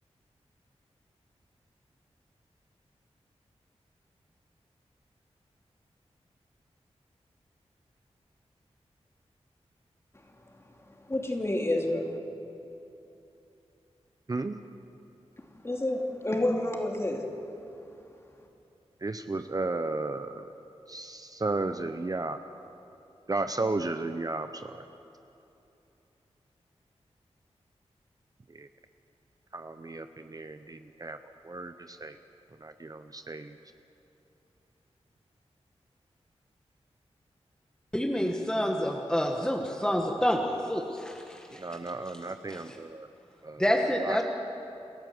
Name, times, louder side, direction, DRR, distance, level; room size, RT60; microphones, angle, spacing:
voice 1, 11.1-12.1 15.6-17.3, left 1 dB, 25° left, 1 dB, 3.0 m, -29 dB
voice 2, 14.3-14.6 19.0-20.5 20.9-22.4 23.3-24.9 28.5-28.7 29.5-32.2 32.6-33.6 41.5-43.1 43.4-43.6 44.0-44.2, right 3 dB, 35° right, 8 dB, 0.8 m, -34 dB
voice 3, 37.9-41.6 43.6-44.2, equal, 5° left, 1 dB, 1.6 m, -28 dB
29.0 x 13.5 x 7.9 m, 2.9 s
wide cardioid pair, 80°, 11 cm